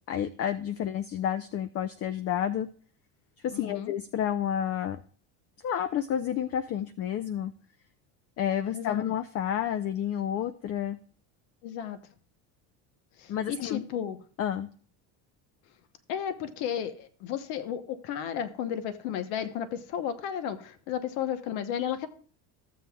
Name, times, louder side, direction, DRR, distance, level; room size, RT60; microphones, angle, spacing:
voice 1, 0.1-2.7 3.4-5.0 5.6-7.5 8.4-11.0 13.3-13.8 14.4-14.7, left 9 dB, 40° left, 12 dB, 0.5 m, -30 dB
voice 2, 3.5-3.9 8.7-9.0 11.6-12.0 13.2-14.2 16.1-22.1, left 9 dB, 75° left, 10 dB, 1.0 m, -33 dB
14.5 x 7.6 x 2.3 m, 0.43 s
supercardioid pair, 105°, 38 cm